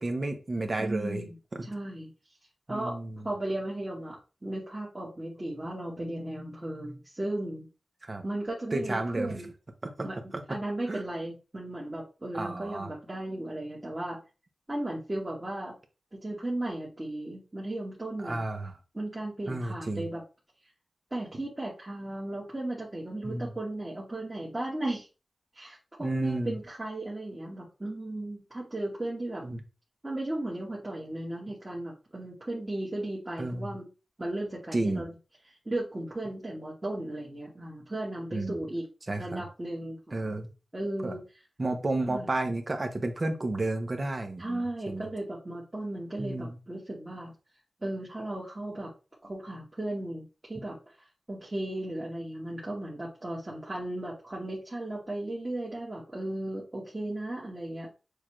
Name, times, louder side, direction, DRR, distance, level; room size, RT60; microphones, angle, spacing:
voice 1, 0.0-1.2 1.5-1.7 2.7-3.2 8.0-8.2 8.7-9.4 9.8-10.1 10.3-10.6 10.9-11.0 12.3-12.9 18.2-18.7 19.5-20.0 23.2-23.5 26.0-26.6 29.4-29.6 33.4-33.7 34.7-35.0 38.3-38.6 39.1-39.5 40.1-40.5 41.0-41.1 41.6-45.0 46.2-46.6, right 2 dB, 35° right, 5 dB, 0.8 m, -32 dB
voice 2, 0.8-1.3 1.6-2.1 2.7-3.0 3.2-7.7 8.2-9.5 10.0-10.2 10.5-14.2 14.7-15.7 16.1-18.4 18.9-20.2 21.1-25.1 25.5-29.4 30.0-33.9 34.2-35.1 35.6-38.9 39.1-40.4 40.7-41.2 42.0-42.3 44.4-47.3 47.8-48.9 49.2-50.8 51.3-57.9, right 1 dB, 20° right, -5 dB, 1.4 m, -35 dB
6.4 x 2.5 x 3.1 m, 0.31 s
wide cardioid pair, 110°, 0 cm